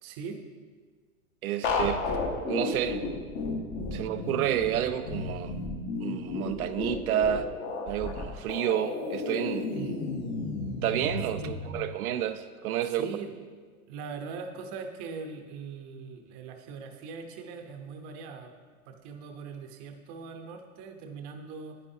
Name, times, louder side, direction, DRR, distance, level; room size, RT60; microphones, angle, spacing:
voice 1, 0.0-0.4 9.7-10.0 11.4-11.5 12.9-13.3 13.9-18.5 18.9-21.8, right 5 dB, 30° right, 5 dB, 0.8 m, -41 dB
voice 2, 1.4-2.0 2.5-3.0 3.9-5.5 6.0-7.5 7.9-9.7 10.8-13.1, right 11 dB, 80° right, 9 dB, 0.6 m, -30 dB
sound 1, 1.6-11.8, left 3 dB, 25° left, 0.9 m, -33 dB
9.8 x 9.3 x 2.7 m, 1.5 s
hypercardioid pair, 145°, 43 cm